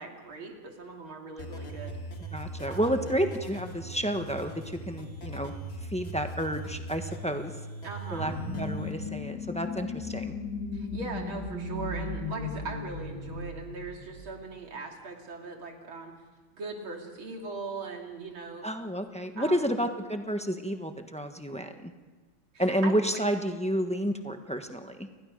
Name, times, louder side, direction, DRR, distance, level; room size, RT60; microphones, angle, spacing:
voice 1, 0.0-2.0 2.7-3.1 7.8-8.3 10.7-16.1 16.5-18.7 19.4-19.7 22.5-22.9, right 3 dB, 80° right, 2 dB, 3.5 m, -40 dB
sound 1, 1.4-8.9, right 2 dB, 30° left, 2.3 m, -40 dB
voice 2, 2.3-5.5 5.9-7.5 8.1-10.3 18.6-21.9 22.6-25.1, equal, 5° left, 6 dB, 0.7 m, -30 dB
sound 2, 8.1-14.5, left 3 dB, 55° left, 4.2 m, -36 dB
29.5 x 20.5 x 5.3 m, 1.3 s
omnidirectional pair, 2.2 m